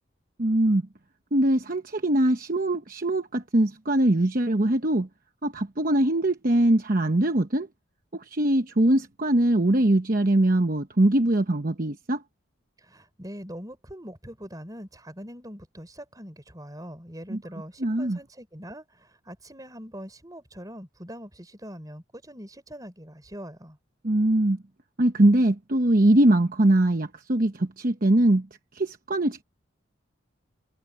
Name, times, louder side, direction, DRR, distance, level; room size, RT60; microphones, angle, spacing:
voice 1, 0.4-0.8 1.3-5.1 5.4-7.7 8.1-12.2 17.3-17.4 17.8-18.2 24.0-24.6 25.0-28.5 28.7-29.4, right 1 dB, 45° right, 1.0 m, -22 dB
voice 2, 12.8-23.8, equal, 20° right, 4.5 m, -42 dB
head